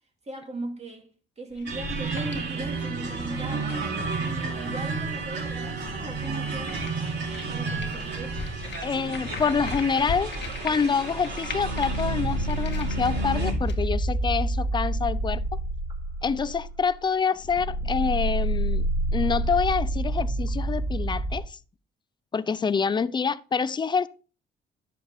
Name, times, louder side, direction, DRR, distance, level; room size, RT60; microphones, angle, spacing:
voice 1, 0.2-1.1 1.4-3.8 4.2-6.8 7.5-8.4, right 2 dB, 35° right, 2.8 m, -38 dB
sound 1, 1.5-13.9, left 4 dB, 60° left, 1.6 m, -41 dB
sound 2, 1.6-13.5, right 3 dB, 65° right, 5.5 m, -32 dB
voice 2, 8.8-10.3 10.6-15.6 16.2-21.6 22.3-24.1, left 5 dB, 25° left, 0.5 m, -26 dB
sound 3, 11.5-17.0 17.4-21.4, right 1 dB, 15° right, 3.2 m, -28 dB
10.5 x 6.8 x 3.5 m
cardioid pair, 90°, 20 cm